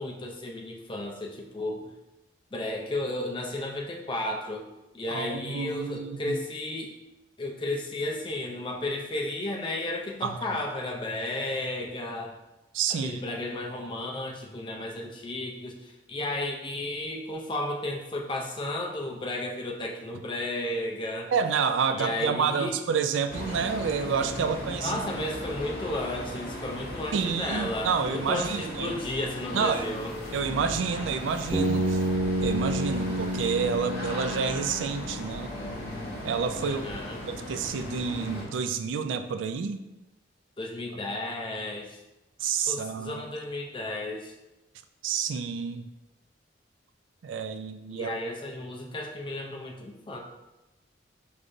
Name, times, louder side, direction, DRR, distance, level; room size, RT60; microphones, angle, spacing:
voice 1, 0.0-1.9 2.5-4.7 4.9-6.9 7.4-12.4 12.9-21.3 21.9-22.8 24.8-30.2 36.6-37.2 40.6-42.0 42.7-44.3 47.9-50.2, left 1 dB, 25° left, 1 dB, 0.5 m, -33 dB
voice 2, 5.1-6.4 10.2-10.4 12.7-13.2 21.3-24.9 27.1-29.0 29.5-29.9 30.3-32.0 32.4-35.5 36.2-36.8 37.2-39.8 42.4-43.2 45.0-45.9 47.2-48.2, right 6 dB, 85° right, 9 dB, 0.3 m, -29 dB
sound 1, 23.3-38.4, left 1 dB, 55° left, 1.0 m, -37 dB
Bass guitar, 31.5-35.5, right 1 dB, 15° right, 0.6 m, -29 dB
5.0 x 3.2 x 2.6 m, 0.99 s
head